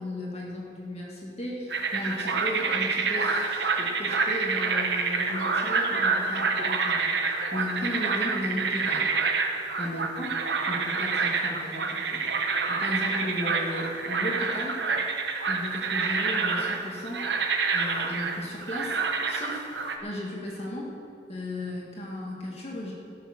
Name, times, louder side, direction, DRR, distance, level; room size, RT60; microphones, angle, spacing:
voice 1, 0.0-9.1 9.8-12.2 12.7-14.8 15.5-17.3 17.7-19.0 19.3-19.7 20.0-20.9 21.3-22.9, left 1 dB, 35° left, -3 dB, 1.8 m, -35 dB
sound 1, 1.7-20.0, right 4 dB, 75° right, 1.1 m, -27 dB
16.5 x 6.6 x 6.4 m, 2.5 s
head